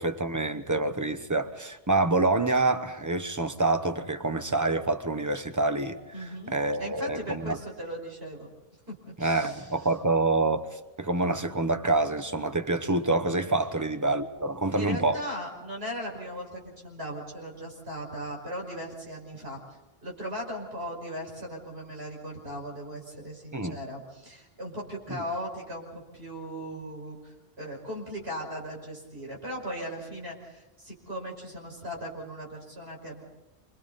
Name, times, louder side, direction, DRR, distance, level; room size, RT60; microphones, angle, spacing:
voice 1, 0.0-7.6 9.2-15.2 23.5-23.8 25.1-25.2, right 2 dB, 20° right, 8 dB, 1.0 m, -27 dB
voice 2, 6.1-8.5 8.9-9.7 14.7-33.2, equal, 70° right, -1 dB, 5.8 m, -38 dB
28.5 x 25.0 x 4.2 m, 1.1 s
omnidirectional pair, 1.1 m